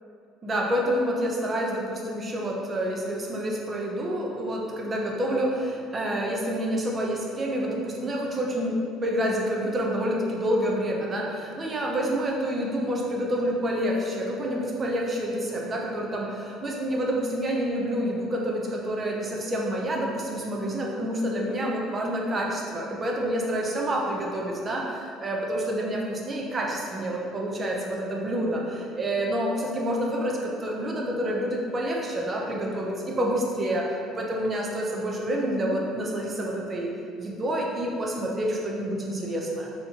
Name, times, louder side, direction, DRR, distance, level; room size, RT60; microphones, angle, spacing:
voice 1, 0.4-33.9 34.2-39.7, equal, 30° right, -1 dB, 0.5 m, -28 dB
4.0 x 2.8 x 2.7 m, 2.5 s
cardioid pair, 125°, 0 cm